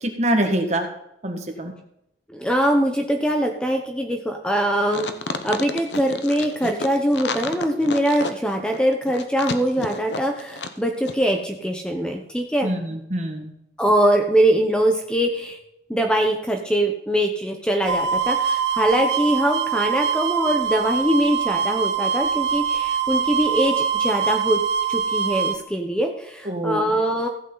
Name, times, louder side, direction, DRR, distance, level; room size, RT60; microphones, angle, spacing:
voice 1, 0.0-0.9 1.2-1.7 12.6-13.5 26.5-26.9, right 1 dB, 40° right, 3 dB, 1.8 m, -24 dB
voice 2, 2.3-5.1 5.4-12.7 13.8-15.6 15.9-24.6 24.9-27.3, right 1 dB, 5° left, 3 dB, 0.9 m, -22 dB
sound 1, 4.9-10.8 11.0-11.1, left 3 dB, 75° left, 0.9 m, -30 dB
sound 2, 17.9-25.6, right 7 dB, 70° right, 1.1 m, -23 dB
15.0 x 8.4 x 4.0 m, 0.79 s
head